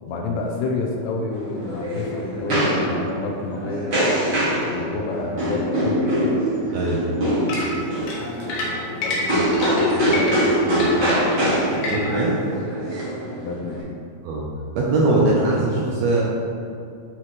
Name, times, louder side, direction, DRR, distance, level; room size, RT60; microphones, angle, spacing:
voice 1, 0.0-3.9 4.6-6.2 8.4-11.0 13.4-13.9, left 3 dB, 80° left, 0 dB, 2.6 m, -29 dB
sound 1, 1.3-13.8, equal, 55° right, 1.1 m, -23 dB
sound 2, 7.5-12.3, left 2 dB, 65° left, 3.0 m, -29 dB
voice 2, 11.9-12.3 14.2-14.5 14.8-16.2, right 2 dB, 80° right, -4 dB, 2.3 m, -20 dB
12.0 x 4.8 x 3.1 m, 2.4 s
omnidirectional pair, 5.4 m